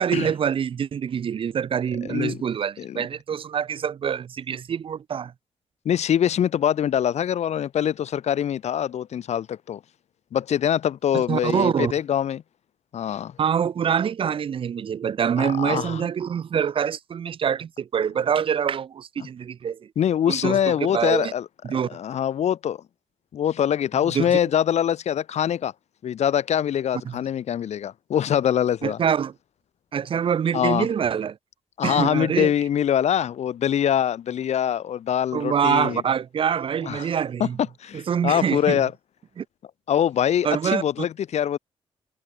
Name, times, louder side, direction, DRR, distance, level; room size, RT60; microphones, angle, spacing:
voice 1, 0.0-5.3 11.1-11.9 13.4-19.8 20.3-20.6 20.9-21.3 21.6-21.9 24.0-24.4 27.1-27.2 28.8-29.3 29.9-31.4 31.8-32.5 35.3-37.6 37.9-38.8 39.4-39.5 40.4-41.1, right 8 dB, 55° right, 1.7 m, -25 dB
voice 2, 2.0-2.4 2.8-3.0 5.8-9.8 10.3-12.4 12.9-13.3 15.4-16.1 20.0-21.4 21.9-22.8 23.3-25.7 26.0-29.0 30.5-30.9 31.8-36.0 36.8-37.1 37.4-37.5 37.8-38.9 39.9-41.6, left 9 dB, 90° left, 6.1 m, -24 dB
wide cardioid pair, 175°, 11 cm